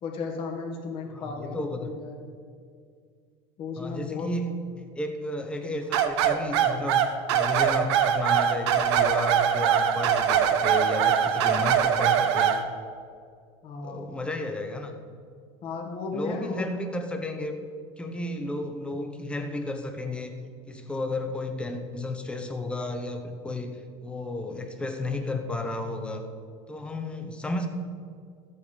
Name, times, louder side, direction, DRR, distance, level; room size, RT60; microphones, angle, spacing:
voice 1, 0.0-2.2 3.6-4.4 13.6-14.0 15.6-16.8, left 4 dB, 40° left, 1 dB, 1.6 m, -35 dB
voice 2, 1.1-1.9 3.8-4.5 4.9-12.6 13.8-14.9 16.1-17.6 18.0-20.3 20.7-26.2 26.7-27.7, left 2 dB, 5° left, 5 dB, 0.9 m, -33 dB
sound 1, 5.9-12.6, right 9 dB, 85° right, 0.9 m, -22 dB
13.5 x 8.3 x 5.1 m, 2.2 s
cardioid pair, 155°, 14 cm